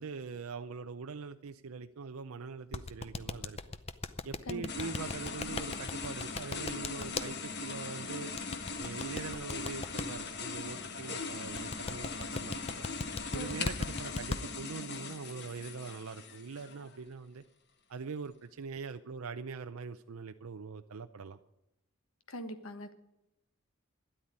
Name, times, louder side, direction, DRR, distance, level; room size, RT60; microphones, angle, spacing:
voice 1, 0.0-3.6 4.2-8.3 8.8-12.9 13.3-17.4 17.9-21.4, right 5 dB, 80° right, 8 dB, 0.6 m, -43 dB
sound 1, 2.7-7.3 8.4-10.0 11.6-14.4, left 3 dB, 25° left, 0.6 m, -37 dB
voice 2, 4.5-4.9 13.3-13.6 22.3-22.9, equal, 75° left, 9 dB, 1.4 m, -42 dB
sound 2, 4.7-17.0, left 4 dB, 50° left, 1.2 m, -40 dB
13.0 x 10.0 x 9.5 m, 0.91 s
head